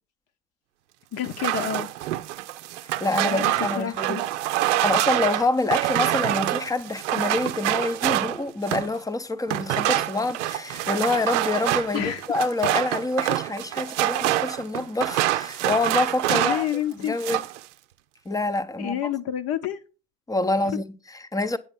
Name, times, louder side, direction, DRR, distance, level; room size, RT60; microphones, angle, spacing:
voice 1, 1.1-1.9 3.2-4.2 11.9-12.2 16.3-17.2 18.8-19.8 20.6-20.8, left 10 dB, 40° left, 1.0 m, -29 dB
sound 1, 1.2-9.0 9.5-16.7 17.0-17.6, right 14 dB, 65° right, 0.7 m, -26 dB
voice 2, 3.0-4.2 4.6-16.6 16.9-17.4 18.2-19.1 20.3-21.6, left 2 dB, 10° left, 0.8 m, -27 dB
8.9 x 7.1 x 5.3 m
figure-of-eight pair, 70°, 39 cm